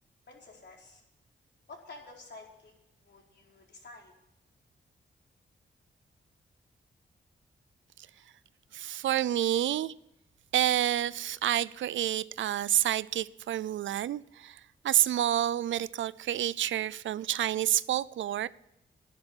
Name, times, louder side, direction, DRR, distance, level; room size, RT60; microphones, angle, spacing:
voice 1, 0.3-1.0 1.7-2.7 3.0-4.1, left 3 dB, 65° left, 4.7 m, -50 dB
voice 2, 8.7-9.9 10.5-18.5, right 12 dB, 85° right, 0.5 m, -29 dB
11.5 x 11.0 x 9.7 m
cardioid pair, 55°, 19 cm